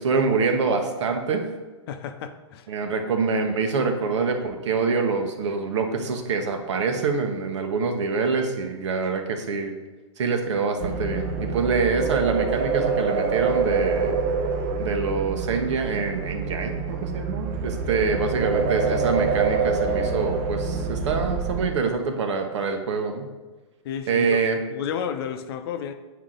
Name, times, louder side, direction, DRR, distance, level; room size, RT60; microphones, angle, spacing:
voice 1, 0.0-1.4 2.7-9.7 10.2-14.2 14.8-23.3 24.1-24.6, right 4 dB, 70° right, 5 dB, 1.1 m, -25 dB
voice 2, 1.9-2.7 23.8-24.4 24.7-25.9, left 8 dB, 55° left, 9 dB, 0.7 m, -31 dB
sound 1, 10.8-21.7, right 4 dB, 35° right, 0.8 m, -26 dB
8.1 x 4.8 x 3.9 m, 1.2 s
hypercardioid pair, 135°, 15 cm